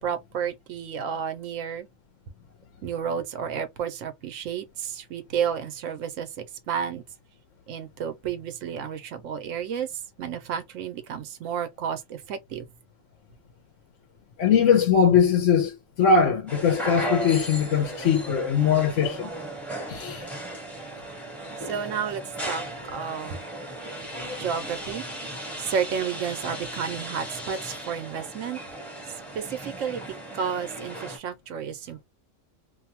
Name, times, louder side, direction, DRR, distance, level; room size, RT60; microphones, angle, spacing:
voice 1, 0.0-1.9 2.8-7.0 7.7-9.9 10.2-12.7 21.6-23.4 24.4-25.0 25.6-28.6 29.3-32.0, right 7 dB, 80° right, 1.0 m, -31 dB
voice 2, 14.4-19.3 19.9-20.3, left 6 dB, 70° left, 1.0 m, -21 dB
sound 1, 16.5-31.2, right 1 dB, ahead, 0.8 m, -36 dB
2.6 x 2.2 x 2.7 m
omnidirectional pair, 1.3 m